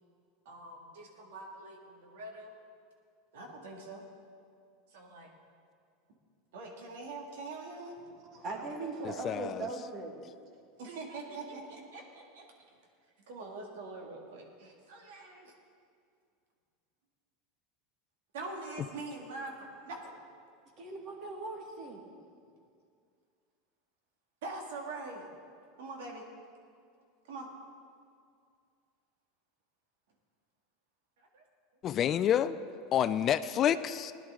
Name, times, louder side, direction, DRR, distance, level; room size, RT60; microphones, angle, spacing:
voice 1, 0.5-2.5 3.3-4.0 4.9-5.3 6.5-7.9 8.6-8.7 10.8-12.4 13.3-15.5 18.3-20.2 24.4-25.3 25.8-26.2 27.3-27.5 31.3-31.4 32.7-32.8, right 3 dB, 90° right, 1 dB, 2.1 m, -44 dB
voice 2, 8.1-10.1 20.8-22.0, right 3 dB, 40° right, 2 dB, 2.0 m, -39 dB
voice 3, 9.2-9.7 31.8-32.6 32.9-34.1, left 10 dB, 35° left, 13 dB, 0.3 m, -28 dB
16.5 x 10.5 x 3.8 m, 2.3 s
supercardioid pair, 140°, 0 cm